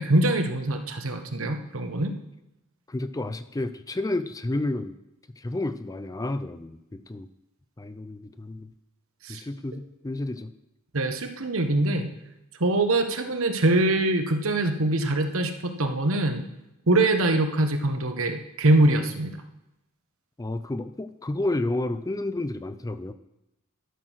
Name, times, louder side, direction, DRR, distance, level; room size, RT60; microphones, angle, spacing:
voice 1, 0.0-2.1 9.2-9.4 10.9-12.1 12.6-16.4 16.9-19.4, right 2 dB, 65° right, 6 dB, 1.2 m, -23 dB
voice 2, 2.9-4.9 5.4-7.3 7.8-8.7 9.3-10.5 20.4-23.1, left 2 dB, 15° left, 11 dB, 0.4 m, -31 dB
12.5 x 6.1 x 6.3 m, 0.90 s
head